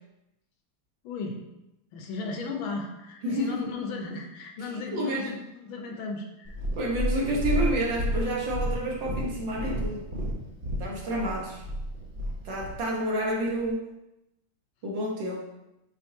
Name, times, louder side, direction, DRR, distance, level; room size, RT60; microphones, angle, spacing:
voice 1, 1.0-1.4 1.9-6.6, left 3 dB, 75° left, 2 dB, 1.6 m, -35 dB
voice 2, 3.2-3.7 4.7-5.3 6.8-10.2 10.8-11.6 12.4-13.9 14.8-15.4, right 1 dB, 65° right, -3 dB, 1.7 m, -29 dB
Purr, 6.4-12.8 13.5-13.6, equal, 45° right, 0.6 m, -31 dB
7.8 x 4.4 x 2.8 m, 0.92 s
omnidirectional pair, 2.4 m